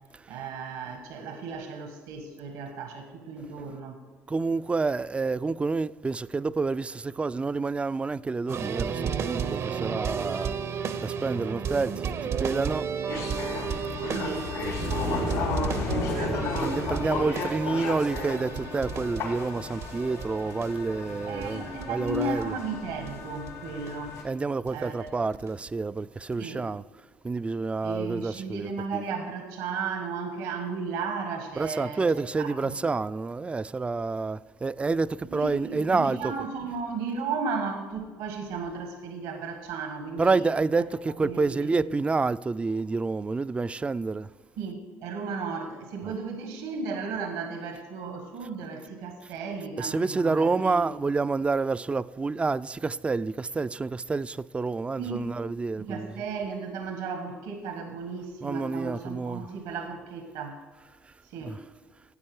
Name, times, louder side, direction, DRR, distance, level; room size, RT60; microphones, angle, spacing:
voice 1, 0.3-4.0 14.1-14.5 14.9-17.8 21.3-24.1 24.7-25.2 26.4-26.6 27.8-32.0 32.4-32.7 35.3-40.4 41.2-41.9 44.6-50.9 55.0-55.2 55.8-60.6 61.2-61.6, right 4 dB, 80° right, 1.4 m, -35 dB
voice 2, 4.3-10.5 11.0-12.9 14.6-15.4 16.6-22.6 24.2-26.8 27.2-29.0 31.6-36.3 40.2-44.3 46.0-46.1 49.8-56.1 58.4-59.5 61.4-61.6, right 4 dB, 20° right, 0.3 m, -28 dB
sound 1, 8.5-23.1 23.5-23.6 23.9-24.0 24.7-24.8 25.1-25.7 26.3-26.4, right 7 dB, 50° right, 0.7 m, -33 dB
sound 2, 13.1-24.2, left 4 dB, 85° left, 3.9 m, -34 dB
13.0 x 8.7 x 4.8 m
supercardioid pair, 70°, 6 cm